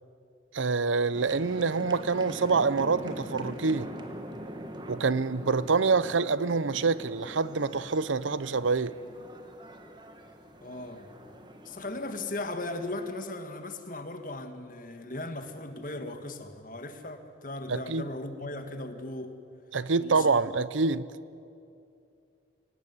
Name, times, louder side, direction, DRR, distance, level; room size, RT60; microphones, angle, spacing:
voice 1, 0.5-3.9 4.9-8.9 17.7-18.0 19.7-21.1, right 4 dB, 85° right, 0.7 m, -26 dB
sound 1, 1.1-13.1, equal, 25° right, 1.8 m, -43 dB
voice 2, 10.6-11.1 11.7-19.3 20.0-20.6, left 2 dB, 45° left, 1.9 m, -37 dB
25.5 x 18.5 x 9.6 m
head